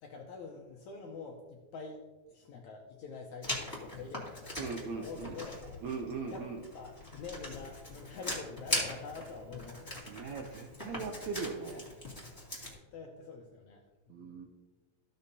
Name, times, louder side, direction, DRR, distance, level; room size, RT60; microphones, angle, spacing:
voice 1, 0.0-2.0 2.3-5.6 6.3-6.4 6.7-10.0 12.9-13.8 14.1-14.5, left 4 dB, 75° left, 1 dB, 1.7 m, -46 dB
Writing, 3.4-12.7, left 1 dB, 10° left, 1.5 m, -41 dB
voice 2, 4.6-5.3 5.8-6.6 10.1-11.9 14.1-14.5, right 5 dB, 85° right, 3 dB, 1.6 m, -39 dB
14.5 x 6.3 x 2.8 m, 1.2 s
omnidirectional pair, 4.2 m